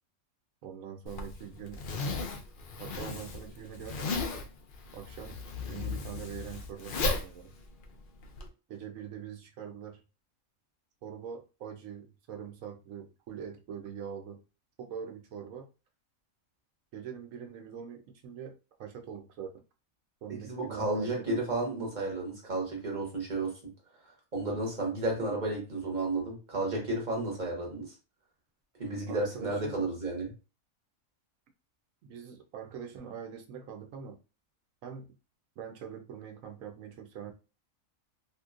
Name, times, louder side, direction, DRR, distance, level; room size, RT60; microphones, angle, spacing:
voice 1, 0.6-1.9 2.8-4.5 4.9-5.4 5.7-7.5 8.7-10.0 11.0-14.4 14.8-15.7 16.9-19.6 20.2-21.4 29.1-29.8 32.0-34.2 34.8-35.1 35.6-37.3, right 8 dB, 75° right, 4 dB, 1.0 m, -43 dB
Zipper (clothing), 1.1-8.5, left 3 dB, 60° left, 0.5 m, -36 dB
voice 2, 20.3-23.5 24.3-27.9 28.8-30.3, right 2 dB, 35° right, -1 dB, 1.0 m, -32 dB
2.9 x 2.8 x 2.4 m, 0.32 s
omnidirectional pair, 1.5 m